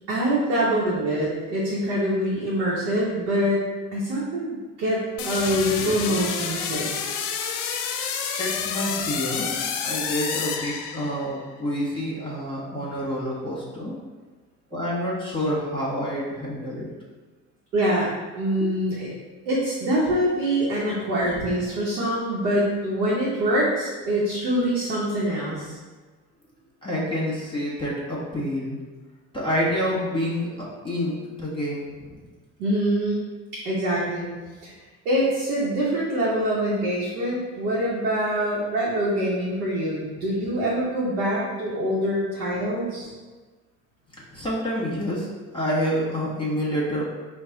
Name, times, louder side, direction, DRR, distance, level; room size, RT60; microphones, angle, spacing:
voice 1, 0.1-3.6 3.9-6.9 17.7-18.1 18.4-19.1 19.4-25.8 32.6-33.3 33.5-34.2 34.6-34.7 35.0-43.1, right 1 dB, 80° right, -7 dB, 0.9 m, -24 dB
sound 1, 5.2-11.4, left 7 dB, 65° left, 0.6 m, -29 dB
voice 2, 5.4-6.1 8.4-14.0 14.7-16.9 26.8-28.8 29.3-32.2 40.2-40.3 44.3-45.3 45.5-47.1, equal, 10° left, -6 dB, 1.5 m, -28 dB
4.6 x 2.3 x 3.9 m, 1.3 s
hypercardioid pair, 55°, 44 cm